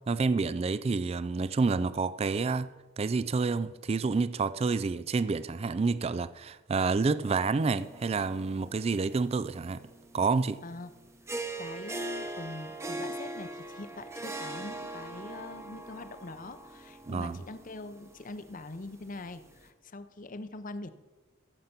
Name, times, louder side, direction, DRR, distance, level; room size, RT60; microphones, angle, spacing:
voice 1, 0.1-2.7 3.0-9.8 10.1-10.6 17.1-17.4, right 4 dB, 30° right, 0.3 m, -28 dB
sound 1, 7.2-19.7, right 2 dB, 15° right, 0.9 m, -42 dB
voice 2, 10.6-10.9 11.3-20.9, left 2 dB, 45° left, 0.7 m, -43 dB
15.0 x 6.7 x 6.0 m
head